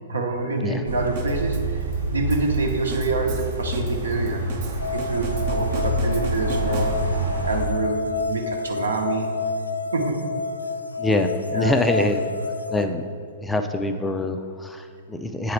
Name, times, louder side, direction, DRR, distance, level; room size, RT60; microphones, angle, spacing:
voice 1, 0.1-1.8 2.1-4.4 4.9-6.9 7.4-9.3 9.9-10.2 11.5-11.7, right 3 dB, 70° right, 2 dB, 1.0 m, -26 dB
sound 1, 0.9-7.7, right 2 dB, 85° right, 1.4 m, -27 dB
sound 2, 1.2-7.4, right 7 dB, 40° right, 0.7 m, -40 dB
sound 3, 4.8-12.9, left 4 dB, 80° left, 0.4 m, -29 dB
voice 2, 11.0-12.2 12.7-13.0 13.4-15.5, left 1 dB, 5° left, 7 dB, 0.4 m, -24 dB
8.3 x 4.7 x 4.5 m, 2.1 s
figure-of-eight pair, 110°, 0 cm